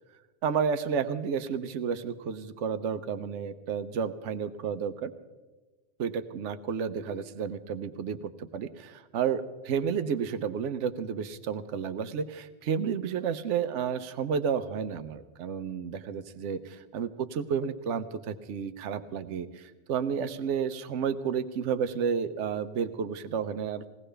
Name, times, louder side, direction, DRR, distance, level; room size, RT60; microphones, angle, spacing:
voice 1, 0.4-5.1 6.0-23.9, right 7 dB, 80° right, 11 dB, 1.0 m, -31 dB
20.5 x 17.5 x 3.3 m, 1.2 s
omnidirectional pair, 1.2 m